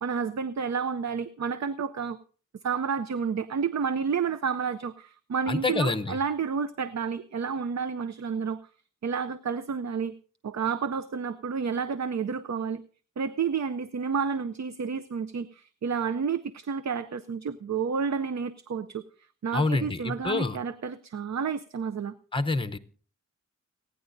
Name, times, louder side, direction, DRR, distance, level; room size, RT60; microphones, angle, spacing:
voice 1, 0.0-2.2 2.6-8.6 9.0-10.1 10.4-12.8 13.2-19.0 19.4-22.1, right 6 dB, 60° right, 12 dB, 0.6 m, -30 dB
voice 2, 5.5-6.2 19.5-20.6 22.3-22.8, left 3 dB, 15° left, 10 dB, 0.8 m, -27 dB
29.5 x 10.0 x 2.6 m, 0.42 s
wide cardioid pair, 100°, 30 cm